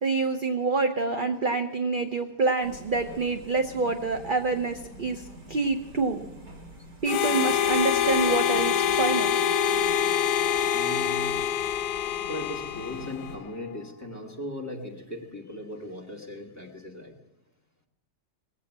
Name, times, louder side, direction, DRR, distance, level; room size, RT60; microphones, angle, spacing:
voice 1, 0.0-6.2 7.0-9.3, right 3 dB, 50° right, 6 dB, 0.6 m, -27 dB
sound 1, 2.6-13.4, right 1 dB, 90° right, 3.5 m, -47 dB
Harmonica, 7.1-13.4, left 9 dB, 75° left, 1.3 m, -25 dB
voice 2, 10.7-11.4 12.3-17.1, left 1 dB, 10° left, -1 dB, 1.9 m, -38 dB
19.5 x 8.4 x 7.3 m, 0.96 s
omnidirectional pair, 1.8 m